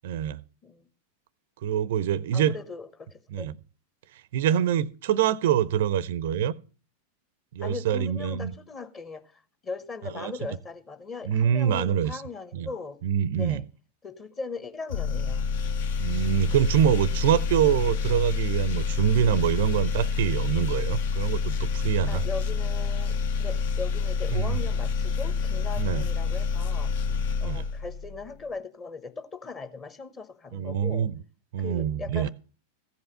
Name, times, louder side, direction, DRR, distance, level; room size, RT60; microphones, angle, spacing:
voice 1, 0.0-0.4 1.6-2.5 3.3-3.5 4.1-6.5 7.5-8.5 10.1-10.3 11.3-12.2 12.5-12.7 13.0-13.6 16.0-22.2 24.3-24.6 25.8-26.1 27.0-27.7 30.5-31.1 31.5-32.3, right 9 dB, 55° right, 0.4 m, -25 dB
voice 2, 2.3-3.5 7.6-13.0 13.4-13.6 14.0-15.5 22.1-26.9 27.4-31.1 31.6-32.3, left 4 dB, 25° left, 1.1 m, -39 dB
sound 1, 14.9-28.3, left 5 dB, 55° left, 0.6 m, -28 dB
15.0 x 5.5 x 6.7 m
figure-of-eight pair, 90°, 0 cm